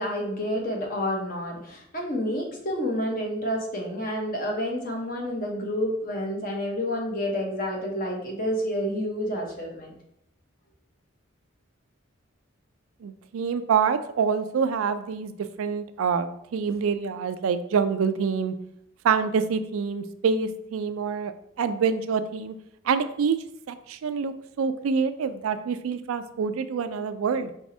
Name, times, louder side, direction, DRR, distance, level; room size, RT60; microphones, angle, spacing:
voice 1, 0.0-9.9, equal, 40° left, 0 dB, 0.9 m, -29 dB
voice 2, 13.0-18.5 19.0-21.3 21.6-22.5 22.9-23.4 23.7-27.5, right 6 dB, 90° right, 11 dB, 0.4 m, -26 dB
4.6 x 4.1 x 2.7 m, 0.75 s
head